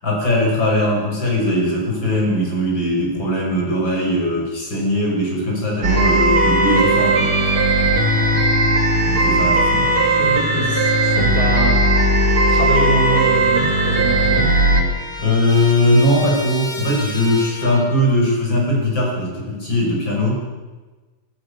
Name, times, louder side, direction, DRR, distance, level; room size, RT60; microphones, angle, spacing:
voice 1, 0.0-7.3 9.1-9.9 15.2-20.4, left 1 dB, 60° left, -2 dB, 6.9 m, -19 dB
sound 1, 5.8-14.8, right 1 dB, 75° right, 3.7 m, -17 dB
voice 2, 8.3-8.7 9.7-11.9 12.5-14.5, right 2 dB, 40° right, 1 dB, 4.4 m, -25 dB
Trumpet, 13.7-18.2, left 1 dB, 45° left, 3.6 m, -33 dB
19.5 x 19.5 x 6.9 m, 1.2 s
omnidirectional pair, 2.3 m